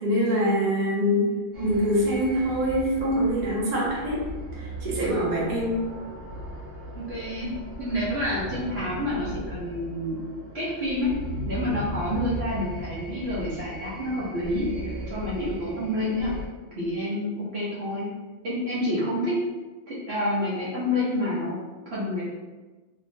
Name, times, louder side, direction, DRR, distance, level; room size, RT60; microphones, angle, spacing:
voice 1, 0.0-1.3 1.6-5.8, equal, 40° right, -7 dB, 1.0 m, -24 dB
sound 1, 1.5-16.5, equal, 85° right, 1.3 m, -37 dB
voice 2, 6.9-7.5 7.8-10.2 10.5-11.1 11.5-16.3 16.7-18.1 18.4-19.4 19.9-21.6 21.9-22.2, left 1 dB, 60° right, -8 dB, 1.0 m, -28 dB
3.2 x 2.8 x 2.6 m, 1.2 s
omnidirectional pair, 1.3 m